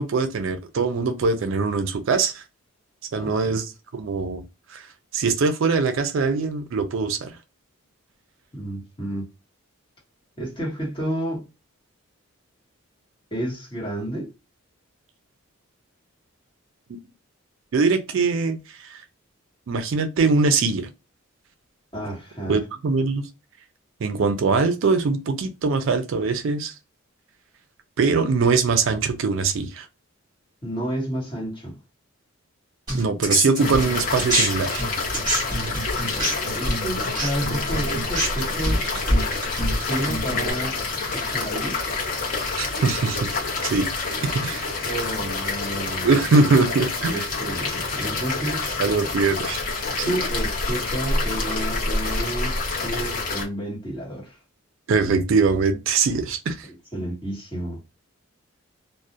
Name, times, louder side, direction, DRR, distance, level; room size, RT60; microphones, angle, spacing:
voice 1, 0.0-2.4 3.1-3.7 3.9-4.4 4.7-4.9 5.1-7.3 17.7-19.0 19.7-20.9 22.5-23.3 24.0-26.7 28.0-29.9 32.9-34.8 42.6-43.4 43.6-43.9 44.4-44.7 46.0-47.3 48.8-49.7 50.0-50.2 54.9-56.7, right 4 dB, 60° right, 0.4 m, -22 dB
voice 2, 3.2-3.6 8.5-9.2 10.4-11.4 13.3-14.3 21.9-22.6 30.6-31.8 35.6-38.8 39.8-40.8 41.1-41.8 44.8-46.2 47.0-48.8 50.0-54.4 56.7-57.8, right 1 dB, 25° left, 1.1 m, -31 dB
sound 1, 32.9-34.5 34.8-40.5, right 1 dB, 20° right, 1.1 m, -25 dB
sound 2, 33.6-53.4, left 3 dB, 40° left, 0.6 m, -27 dB
2.3 x 2.0 x 2.6 m
head